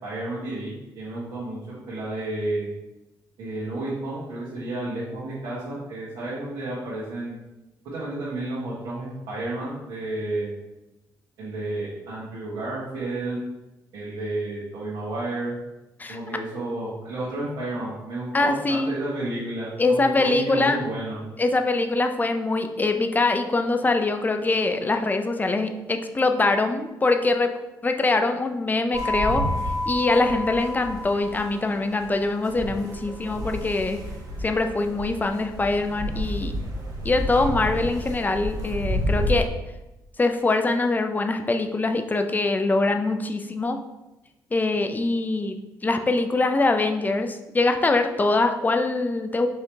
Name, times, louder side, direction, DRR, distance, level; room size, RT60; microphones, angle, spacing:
voice 1, 0.0-2.7 3.4-7.4 7.8-10.5 11.4-13.4 13.9-15.5 16.1-21.2, right 2 dB, 75° right, -9 dB, 1.5 m, -31 dB
voice 2, 18.3-18.9 19.8-20.8 21.4-27.5 27.8-29.4 29.9-34.0 34.4-36.5 37.0-39.5 40.2-43.8 44.5-45.6 45.8-49.5, left 3 dB, 20° left, 6 dB, 0.5 m, -23 dB
sound 1, 28.9-39.5, equal, 45° right, 1.1 m, -30 dB
4.6 x 3.0 x 3.4 m, 0.99 s
supercardioid pair, 70°, 8 cm